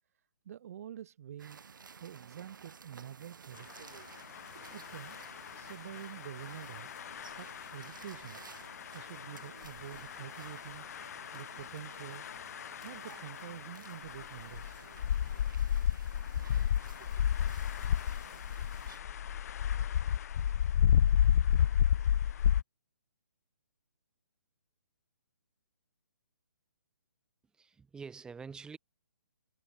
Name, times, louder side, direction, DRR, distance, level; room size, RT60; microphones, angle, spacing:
voice 1, 0.5-1.7 2.0-3.7 4.7-5.2 5.5-6.9 7.4-8.4 8.9-10.9 11.3-12.3 12.8-14.9, right 10 dB, 45° right, 0.5 m, -47 dB
sound 1, 1.4-19.0, right 6 dB, 75° right, 0.8 m, -54 dB
sound 2, 4.3-22.6, left 9 dB, 50° left, 0.4 m, -32 dB
voice 2, 27.5-28.8, right 5 dB, 5° right, 1.3 m, -46 dB
hypercardioid pair, 145°, 11 cm